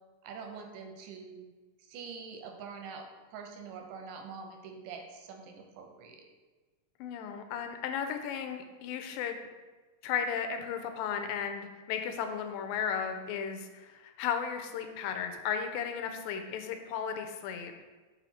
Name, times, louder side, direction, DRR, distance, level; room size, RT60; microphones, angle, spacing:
voice 1, 0.2-1.5 1.8-6.2, right 5 dB, 85° right, 3 dB, 2.2 m, -45 dB
voice 2, 7.0-9.4 10.0-17.7, left 7 dB, 80° left, 6 dB, 2.2 m, -35 dB
5.8 x 4.1 x 4.2 m, 1.3 s
omnidirectional pair, 4.0 m